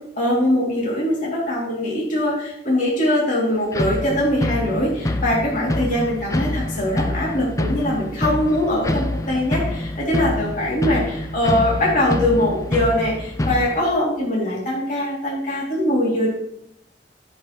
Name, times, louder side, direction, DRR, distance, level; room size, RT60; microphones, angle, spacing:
voice 1, 0.2-16.3, left 1 dB, 45° left, -5 dB, 2.9 m, -22 dB
sound 1, 3.7-13.8, left 1 dB, 20° left, 0.5 m, -26 dB
15.5 x 5.4 x 3.2 m, 0.76 s
head